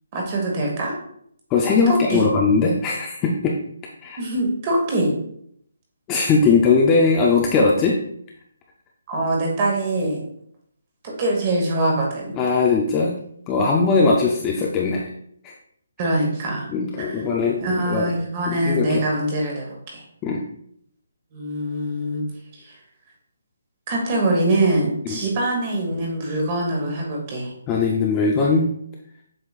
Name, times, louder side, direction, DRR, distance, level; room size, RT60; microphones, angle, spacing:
voice 1, 0.1-1.0 1.9-2.3 4.2-5.1 9.1-10.2 11.0-12.3 16.0-16.7 17.0-17.2 17.6-20.0 21.3-22.3 22.6-22.7 23.9-27.5, right 1 dB, 20° right, 0 dB, 1.2 m, -23 dB
voice 2, 1.5-3.5 4.0-4.2 6.1-8.0 12.3-13.1 13.5-15.1 15.4-15.5 16.7-17.6 17.8-18.1 18.5-19.2 20.2-20.4 25.0-25.2 27.7-28.7, left 4 dB, 10° left, -2 dB, 0.4 m, -19 dB
7.8 x 5.6 x 2.4 m, 0.69 s
hypercardioid pair, 175°, 0 cm